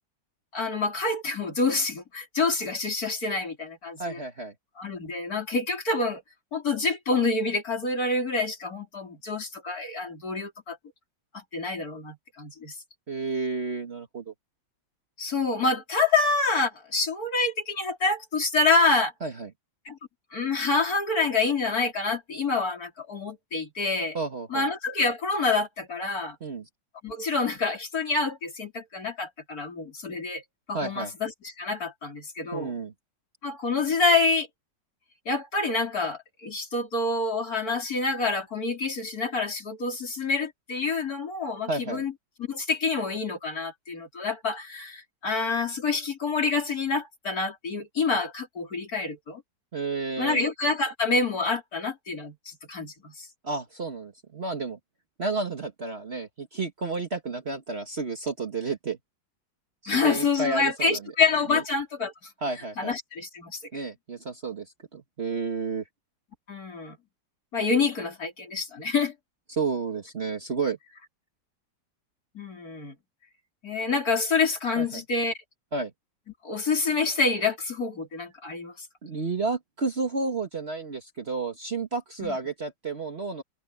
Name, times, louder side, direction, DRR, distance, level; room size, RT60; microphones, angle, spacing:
voice 1, 0.5-4.2 4.8-6.2 6.5-10.8 11.3-12.8 15.2-19.1 19.9-20.0 20.3-24.2 24.5-26.4 27.0-30.4 30.7-32.7 33.4-34.5 35.3-42.1 42.4-49.4 50.2-53.3 59.9-62.3 62.8-63.6 66.5-67.0 67.5-69.1 72.3-72.9 73.6-75.3 76.4-78.9 82.2-82.4, left 3 dB, 50° left, 3.9 m, -27 dB
voice 2, 4.0-4.5 13.1-14.3 19.2-19.5 24.1-24.7 26.4-26.6 30.7-31.1 32.5-32.9 41.7-42.0 49.7-50.4 53.4-54.8 55.2-59.0 59.8-61.0 61.5-61.6 62.4-62.9 63.7-65.8 69.5-70.8 74.8-75.0 75.7-75.9 79.0-83.4, right 3 dB, 35° right, 1.5 m, -31 dB
omnidirectional pair, 2.0 m